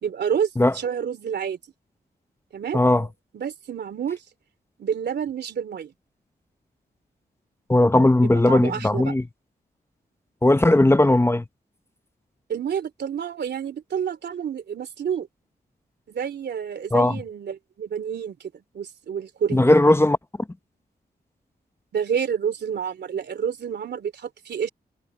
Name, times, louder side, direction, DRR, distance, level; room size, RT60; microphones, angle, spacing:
voice 1, 0.0-1.6 2.5-2.8 3.3-4.2 4.8-5.9 8.0-8.1 8.3-9.1 12.5-15.3 16.1-18.4 18.7-19.8 21.9-24.7, right 7 dB, 85° right, 3.1 m, -29 dB
voice 2, 2.7-3.1 7.7-9.2 10.4-11.4 16.9-17.2 19.5-20.2, left 1 dB, 15° left, 0.9 m, -17 dB
cardioid pair, 75°, 17 cm